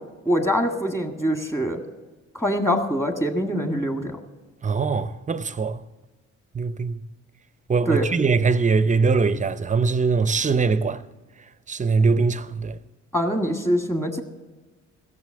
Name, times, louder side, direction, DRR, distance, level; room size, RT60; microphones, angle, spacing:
voice 1, 0.3-1.8 2.3-4.2 7.9-8.2 13.1-14.2, equal, 10° left, 1.8 m, -24 dB
voice 2, 4.6-5.8 6.5-7.0 7.7-11.0 11.7-12.8, right 4 dB, 25° right, 0.6 m, -22 dB
15.5 x 6.9 x 7.6 m
cardioid pair, 90°, 30 cm